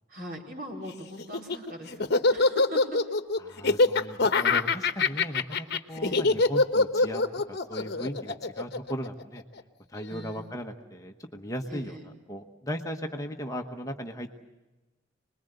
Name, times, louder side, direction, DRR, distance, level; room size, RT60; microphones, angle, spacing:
voice 1, 0.1-3.2 6.0-6.2 10.1-10.5 11.7-12.0, equal, 50° right, 0 dB, 4.7 m, -40 dB
Laughter, 1.2-9.6, left 3 dB, 55° left, 1.1 m, -24 dB
voice 2, 3.4-9.4 9.9-14.4, equal, 15° left, 3 dB, 1.1 m, -37 dB
26.5 x 21.5 x 7.9 m, 1.1 s
head